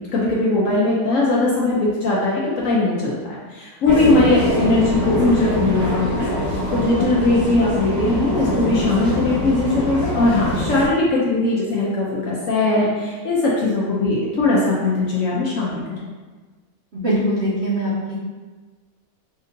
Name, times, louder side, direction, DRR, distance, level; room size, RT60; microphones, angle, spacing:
voice 1, 0.1-6.3 6.7-16.1, left 2 dB, 65° left, -5 dB, 0.9 m, -20 dB
sound 1, 3.9-10.9, left 1 dB, 15° left, 1.3 m, -23 dB
voice 2, 16.9-18.1, equal, 55° right, -8 dB, 0.8 m, -22 dB
5.2 x 2.7 x 2.5 m, 1.4 s
omnidirectional pair, 1.8 m